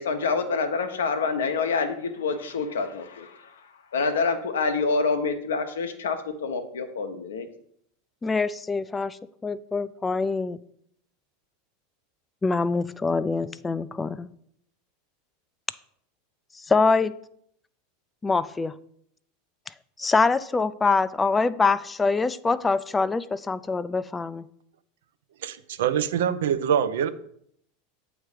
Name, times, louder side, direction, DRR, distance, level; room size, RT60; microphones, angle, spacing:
voice 1, 0.0-7.5, left 4 dB, 85° left, 7 dB, 0.8 m, -27 dB
voice 2, 8.2-9.2 9.4-10.6 12.4-14.3 16.7-17.1 18.2-18.7 20.0-24.4, left 4 dB, 15° left, 15 dB, 0.3 m, -24 dB
voice 3, 25.4-27.1, right 8 dB, 75° right, 12 dB, 0.5 m, -24 dB
8.0 x 3.0 x 4.9 m, 0.68 s
hypercardioid pair, 95°, 0 cm